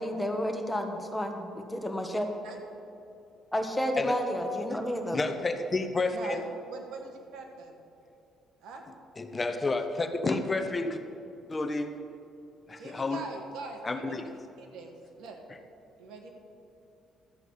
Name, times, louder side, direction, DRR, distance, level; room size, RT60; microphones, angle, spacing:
voice 1, 0.0-2.3 3.5-5.2, equal, 10° left, 4 dB, 1.2 m, -31 dB
voice 2, 5.1-6.4 9.2-11.0 11.5-12.0 12.7-13.2 13.8-14.2, left 3 dB, 25° left, 8 dB, 0.8 m, -30 dB
voice 3, 6.1-6.4 6.7-7.8 8.6-8.8 10.2-10.4 12.8-14.2 14.6-15.4 16.0-16.3, right 3 dB, 80° right, 3 dB, 1.7 m, -42 dB
13.0 x 8.0 x 5.6 m, 2.6 s
cardioid pair, 105°, 0 cm